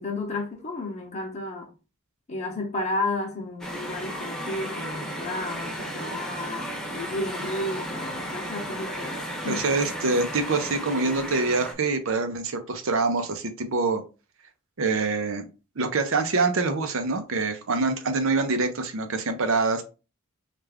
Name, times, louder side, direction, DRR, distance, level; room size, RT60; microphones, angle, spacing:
voice 1, 0.0-1.7 2.3-9.6, left 2 dB, 30° left, 0.8 m, -32 dB
sound 1, 3.6-11.7, equal, ahead, 0.9 m, -34 dB
voice 2, 9.5-14.0 14.8-15.5 15.8-19.8, right 3 dB, 65° right, 0.7 m, -25 dB
3.3 x 2.5 x 3.4 m
head